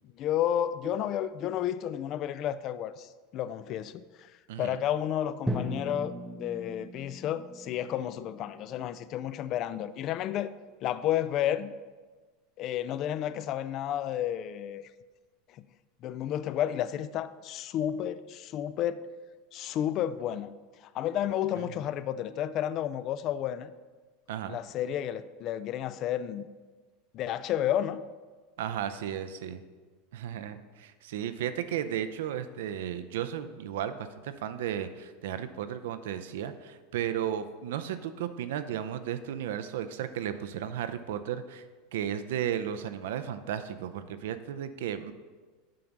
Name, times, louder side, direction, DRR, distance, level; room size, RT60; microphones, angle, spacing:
voice 1, 0.2-4.3 4.6-6.1 6.4-10.5 10.8-11.7 12.6-14.9 15.5-15.7 16.0-19.0 19.5-20.5 20.8-23.7 24.5-26.5 27.1-28.0, left 11 dB, 45° left, 0.4 m, -31 dB
voice 2, 4.5-4.8 21.6-21.7 24.3-24.6 28.6-29.6 30.1-41.6 41.9-45.1, right 10 dB, 80° right, 0.6 m, -34 dB
Drum, 5.5-9.5, equal, 5° right, 0.7 m, -38 dB
7.6 x 5.8 x 5.2 m
supercardioid pair, 125°, 0 cm